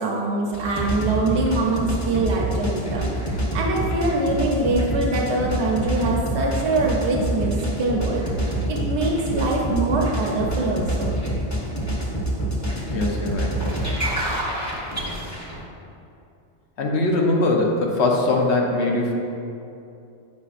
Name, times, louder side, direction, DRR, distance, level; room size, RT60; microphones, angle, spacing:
voice 1, 0.0-11.1, right 2 dB, 75° right, -2 dB, 1.1 m, -24 dB
sound 1, 0.5-15.6, right 1 dB, 15° left, 1.1 m, -26 dB
voice 2, 12.9-13.5 16.8-19.1, left 2 dB, 75° left, -1 dB, 1.1 m, -21 dB
9.4 x 5.5 x 2.5 m, 2.7 s
omnidirectional pair, 1.2 m